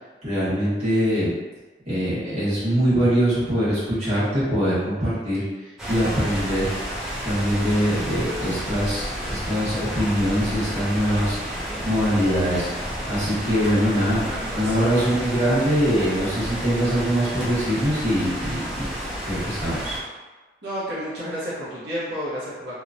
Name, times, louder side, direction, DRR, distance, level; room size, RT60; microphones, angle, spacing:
voice 1, 0.2-1.3 1.8-5.4 5.9-6.7 7.2-11.4 11.8-12.7 13.1-14.2 14.5-18.9 19.3-20.0, equal, 40° right, -11 dB, 1.3 m, -23 dB
sound 1, 5.8-20.0, equal, 5° right, 0.4 m, -31 dB
voice 2, 14.2-15.1 20.6-22.8, equal, 75° right, -10 dB, 0.7 m, -31 dB
3.0 x 2.0 x 2.5 m, 1.2 s
head